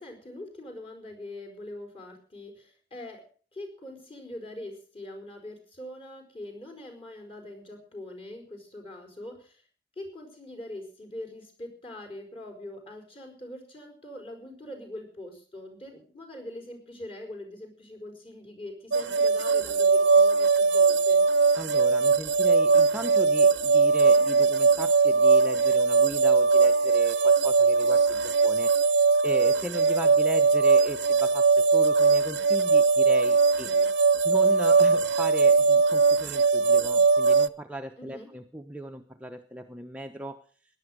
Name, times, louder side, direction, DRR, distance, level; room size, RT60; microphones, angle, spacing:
voice 1, 0.0-3.2 3.5-9.6 10.0-21.3 33.7-33.9 38.0-38.3, left 1 dB, 30° left, 5 dB, 4.7 m, -43 dB
sound 1, 18.9-37.5, right 4 dB, 70° right, 0.8 m, -21 dB
voice 2, 21.6-33.7 34.2-40.4, equal, 5° right, 4 dB, 0.8 m, -37 dB
17.0 x 11.0 x 6.5 m, 0.42 s
head